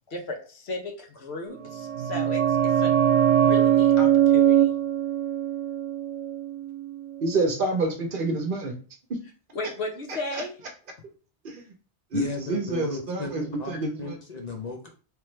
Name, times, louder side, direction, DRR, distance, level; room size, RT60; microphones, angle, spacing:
voice 1, 0.1-3.0 3.4-4.7 9.5-10.5, left 2 dB, 70° left, 2 dB, 1.1 m, -35 dB
sound 1, 1.6-7.0 7.2-7.3, right 10 dB, 85° right, 0.9 m, -22 dB
voice 2, 7.2-8.7 10.3-10.4 11.4-11.6 12.1-13.9, right 2 dB, 55° right, 4 dB, 0.8 m, -27 dB
voice 3, 12.1-14.9, left 3 dB, 45° left, 2 dB, 0.6 m, -34 dB
3.3 x 3.0 x 3.1 m, 0.38 s
omnidirectional pair, 1.1 m